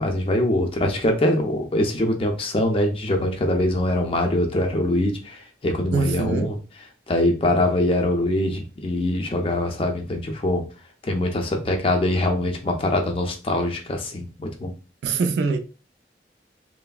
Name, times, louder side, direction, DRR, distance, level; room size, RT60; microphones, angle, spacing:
voice 1, 0.0-6.6 7.1-10.6 11.0-14.7, left 1 dB, 30° left, 0.4 m, -23 dB
voice 2, 5.9-6.5 15.0-15.6, right 4 dB, 75° right, 0.3 m, -23 dB
3.2 x 2.0 x 2.2 m
head